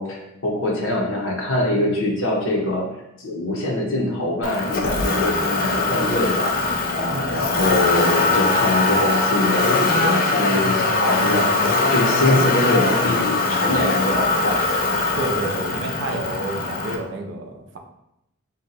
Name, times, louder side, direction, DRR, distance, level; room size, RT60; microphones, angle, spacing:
voice 1, 0.0-2.8 3.2-6.5 6.9-11.5 11.9-14.7, left 1 dB, 65° left, -1 dB, 0.7 m, -23 dB
Motor vehicle (road), 4.4-17.0, left 3 dB, 40° left, 0.3 m, -21 dB
voice 2, 7.1-7.5 15.2-17.8, right 2 dB, 55° right, 3 dB, 0.4 m, -30 dB
2.7 x 2.2 x 3.9 m, 0.84 s
head